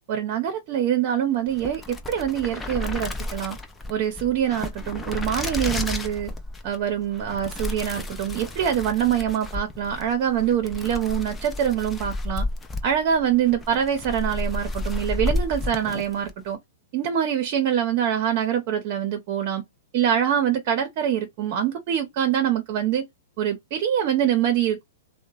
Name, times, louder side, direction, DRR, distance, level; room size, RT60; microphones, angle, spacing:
voice 1, 0.1-3.6 3.9-6.3 6.6-12.5 12.8-16.6 16.9-19.6 19.9-23.1 23.4-24.8, right 9 dB, 45° right, 0.7 m, -24 dB
sound 1, 1.5-16.4, left 2 dB, 10° left, 0.5 m, -32 dB
2.8 x 2.1 x 2.3 m
hypercardioid pair, 145°, 0 cm